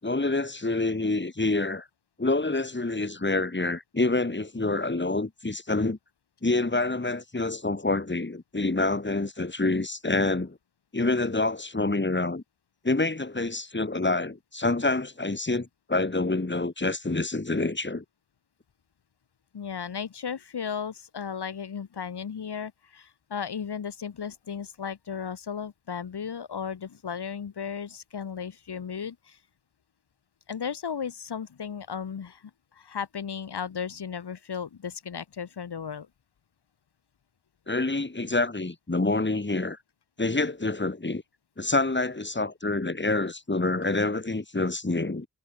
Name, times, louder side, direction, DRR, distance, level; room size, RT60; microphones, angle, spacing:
voice 1, 0.0-1.9 2.2-6.0 6.4-10.6 10.9-12.4 12.8-18.0 37.7-39.8 40.2-41.2 41.6-45.3, left 2 dB, 30° left, 5.0 m, -27 dB
voice 2, 19.5-29.4 30.5-36.1, left 7 dB, 80° left, 5.5 m, -35 dB
cardioid pair, 45°, 39 cm